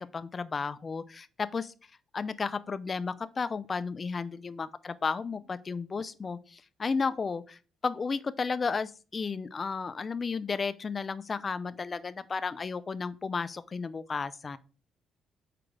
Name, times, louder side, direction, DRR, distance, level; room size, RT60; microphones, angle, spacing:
voice 1, 0.0-1.7 2.1-14.6, left 5 dB, 35° left, 0.5 m, -33 dB
5.9 x 4.5 x 5.1 m
cardioid pair, 90°, 0 cm